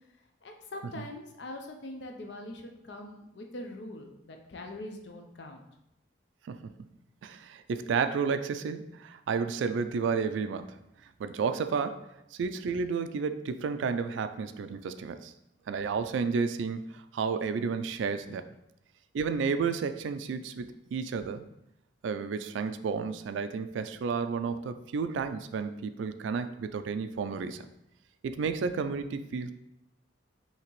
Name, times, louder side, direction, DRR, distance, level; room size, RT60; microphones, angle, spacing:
voice 1, 0.4-5.6, left 1 dB, 65° left, 3 dB, 0.6 m, -43 dB
voice 2, 7.2-10.8 11.2-15.3 15.7-18.5 19.1-21.5 22.0-27.7 28.2-29.6, right 5 dB, 75° right, 10 dB, 0.3 m, -32 dB
5.7 x 2.9 x 3.1 m, 0.84 s
head